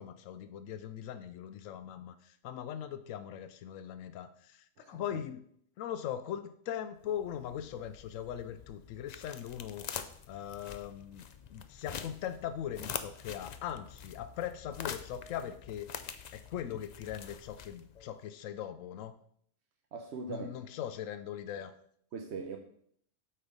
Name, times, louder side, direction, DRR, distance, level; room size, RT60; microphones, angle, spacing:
voice 1, 0.0-5.4 5.8-9.9 10.3-15.9 16.3-19.2 20.3-21.7, left 10 dB, 85° left, 1.0 m, -40 dB
voice 2, 4.8-5.2 19.9-20.5 22.1-22.6, right 4 dB, 60° right, 1.0 m, -41 dB
sound 1, 7.1-18.1, left 7 dB, 60° left, 0.4 m, -45 dB
8.4 x 4.4 x 5.3 m
omnidirectional pair, 1.3 m